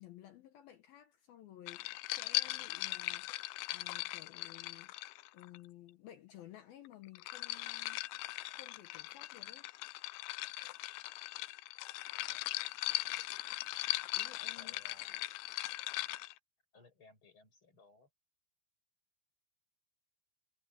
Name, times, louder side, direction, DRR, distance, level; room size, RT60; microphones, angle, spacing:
voice 1, 0.0-3.3 3.7-4.9 5.3-8.0 8.5-9.7 14.1-14.8, left 12 dB, 70° left, 2.3 m, -55 dB
sound 1, 1.7-5.6 6.9-16.3, left 19 dB, 85° left, 2.5 m, -39 dB
voice 2, 14.6-15.1 16.7-18.1, left 3 dB, 25° left, 6.2 m, -62 dB
omnidirectional pair, 5.6 m